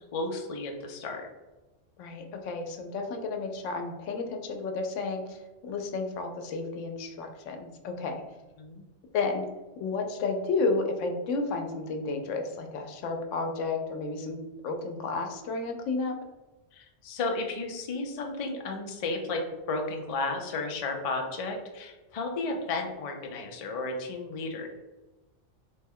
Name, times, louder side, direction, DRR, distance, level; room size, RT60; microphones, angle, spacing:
voice 1, 0.1-1.3 8.6-8.8 16.7-24.7, left 3 dB, 55° left, 3 dB, 0.4 m, -33 dB
voice 2, 2.0-8.2 9.1-9.5 9.8-16.2, left 3 dB, 85° left, 4 dB, 0.9 m, -32 dB
3.2 x 2.1 x 3.5 m, 1.1 s
omnidirectional pair, 1.2 m